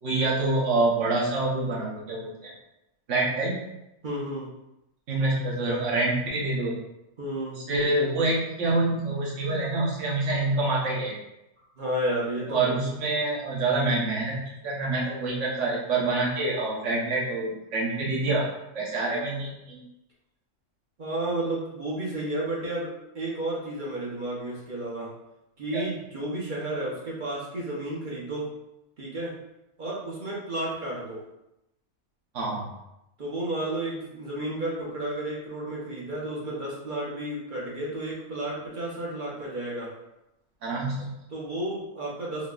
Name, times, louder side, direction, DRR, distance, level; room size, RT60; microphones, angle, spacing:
voice 1, 0.0-2.5 3.1-3.6 5.1-6.7 7.6-11.2 12.5-18.5 18.7-19.8 25.7-25.8 32.3-32.6 40.6-41.1, right 2 dB, 65° right, -4 dB, 1.2 m, -26 dB
voice 2, 4.0-4.5 7.2-7.7 11.8-12.8 21.0-25.1 25.6-28.5 29.0-29.4 29.8-31.2 33.2-39.9 41.3-42.5, right 1 dB, 45° right, -5 dB, 0.8 m, -32 dB
3.9 x 2.7 x 2.4 m, 0.89 s
omnidirectional pair, 1.5 m